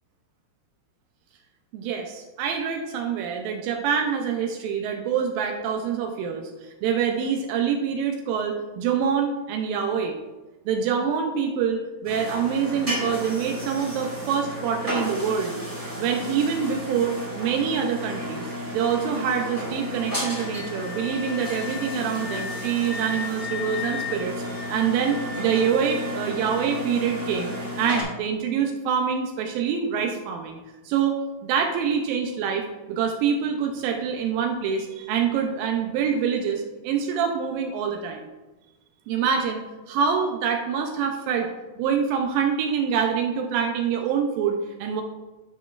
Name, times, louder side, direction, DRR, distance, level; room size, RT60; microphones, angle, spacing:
voice 1, 1.7-6.5 6.8-10.2 10.7-15.5 16.0-18.4 18.7-24.3 24.7-30.6 30.9-38.3 39.1-39.6 39.9-41.5 41.8-45.0, right 7 dB, 85° right, 2 dB, 2.4 m, -25 dB
sound 1, 12.0-28.0, equal, 5° right, 1.7 m, -33 dB
Wind instrument woodwind instrument, 20.2-26.6, left 5 dB, 50° left, 2.6 m, -37 dB
10.0 x 5.9 x 2.4 m, 1.1 s
omnidirectional pair, 4.0 m